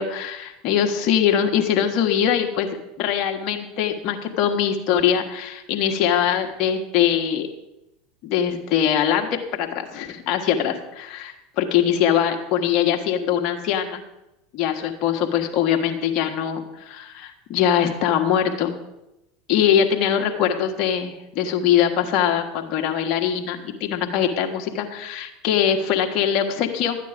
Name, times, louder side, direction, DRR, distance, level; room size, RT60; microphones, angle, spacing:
voice 1, 0.0-7.5 8.2-14.0 14.5-18.7 19.5-27.0, left 9 dB, 55° left, 4 dB, 1.6 m, -22 dB
12.0 x 9.2 x 5.2 m, 0.90 s
hypercardioid pair, 95°, 0 cm